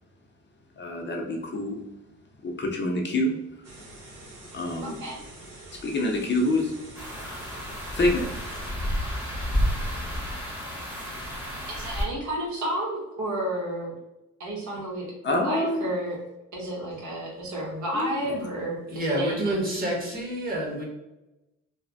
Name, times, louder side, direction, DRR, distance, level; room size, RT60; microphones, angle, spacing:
voice 1, 0.8-1.8 2.4-3.3 4.5-5.0 5.8-6.7 7.2-7.4 7.9-8.3 15.2-15.8 17.9-18.2, left 1 dB, 40° left, 1 dB, 0.6 m, -26 dB
sound 1, 3.6-8.7, right 2 dB, 85° right, 1.0 m, -46 dB
voice 2, 4.8-5.2 11.7-13.9 14.4-16.2 16.5-19.6, right 1 dB, 70° right, -3 dB, 1.2 m, -31 dB
sound 2, 6.9-12.0, equal, 5° right, 0.9 m, -30 dB
voice 3, 18.9-20.8, right 1 dB, 30° right, -4 dB, 1.3 m, -28 dB
3.1 x 2.1 x 2.5 m, 0.97 s
cardioid pair, 90°, 30 cm